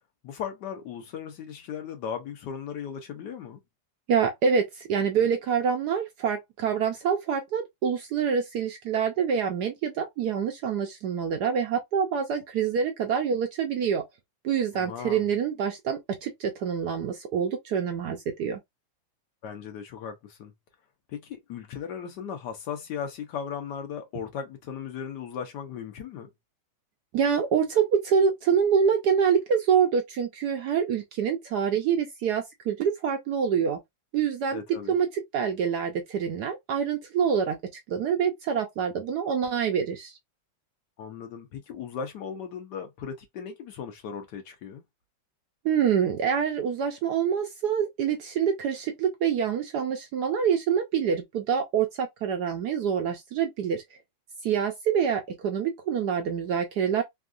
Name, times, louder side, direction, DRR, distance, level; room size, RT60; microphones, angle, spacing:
voice 1, 0.2-3.6 14.7-15.3 19.4-20.5 21.1-26.3 34.5-34.9 41.0-44.8, left 7 dB, 70° left, 1.2 m, -37 dB
voice 2, 4.1-14.0 14.4-18.6 27.1-33.8 34.1-34.6 34.9-37.6 37.9-40.2 45.6-53.8 54.4-57.0, right 7 dB, 70° right, 1.0 m, -26 dB
3.5 x 2.3 x 2.4 m
omnidirectional pair, 2.2 m